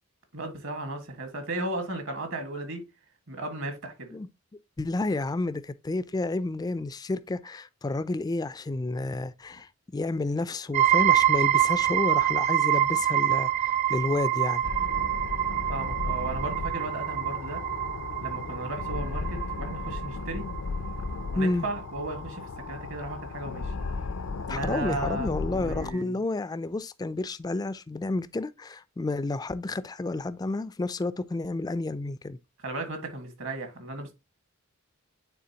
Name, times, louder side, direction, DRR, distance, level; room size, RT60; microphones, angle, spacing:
voice 1, 0.3-2.8 3.3-4.1 15.7-17.6 18.2-20.5 21.3-23.7 24.5-26.1 32.6-34.1, right 2 dB, 65° right, 1.6 m, -35 dB
voice 2, 4.8-14.6 21.4-21.7 24.5-32.4, left 2 dB, 20° left, 0.3 m, -30 dB
sound 1, 10.7-22.2, right 12 dB, 35° right, 0.6 m, -26 dB
sound 2, 14.6-25.9, left 4 dB, 80° left, 0.5 m, -35 dB
9.3 x 3.7 x 2.8 m
head